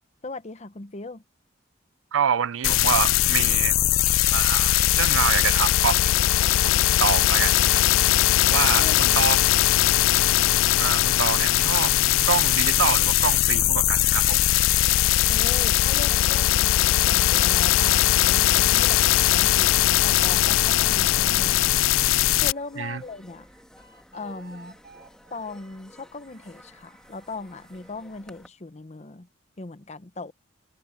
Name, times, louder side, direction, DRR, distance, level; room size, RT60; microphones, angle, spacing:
voice 1, 0.2-1.2 8.7-9.2 15.3-21.8 22.4-23.5 24.1-24.8 25.3-29.3 29.6-30.3, left 3 dB, 35° left, 0.8 m, -38 dB
voice 2, 2.1-3.8 4.3-7.8 8.5-9.4 10.8-11.9 12.3-14.5 22.8-23.0, right 8 dB, 85° right, 0.5 m, -27 dB
sound 1, 2.6-22.5, left 14 dB, 85° left, 0.3 m, -20 dB
sound 2, 11.0-28.5, equal, 5° left, 2.4 m, -52 dB
sound 3, 16.9-22.2 22.6-27.9, right 3 dB, 55° right, 3.9 m, -52 dB
head